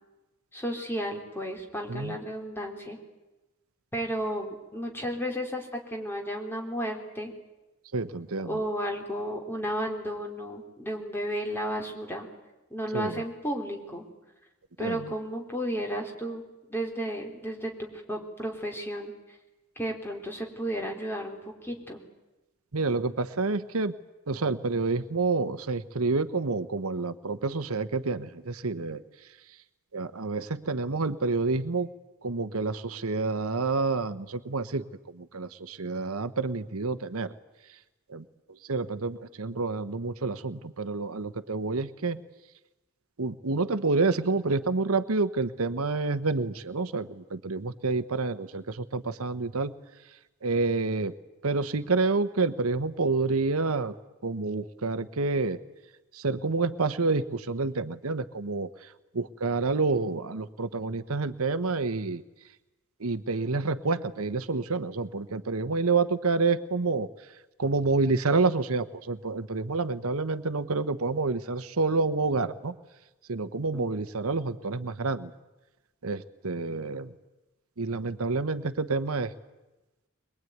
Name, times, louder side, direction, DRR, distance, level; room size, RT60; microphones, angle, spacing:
voice 1, 0.5-3.0 3.9-7.3 8.4-12.3 12.7-14.1 14.8-16.4 16.7-19.1 19.8-22.0 73.7-73.9, equal, 10° left, 2 dB, 3.6 m, -33 dB
voice 2, 7.9-8.5 12.9-13.2 14.8-15.0 22.7-23.9 24.3-29.0 29.9-31.9 32.2-34.8 35.3-37.3 38.1-38.2 38.7-42.2 43.2-49.7 50.4-51.1 51.4-53.9 54.2-55.6 56.2-58.7 59.1-62.2 63.0-67.1 67.6-72.7 73.3-75.3 76.0-77.1 77.8-79.3, right 3 dB, 85° right, 12 dB, 1.0 m, -28 dB
22.5 x 22.0 x 9.4 m, 1.0 s
head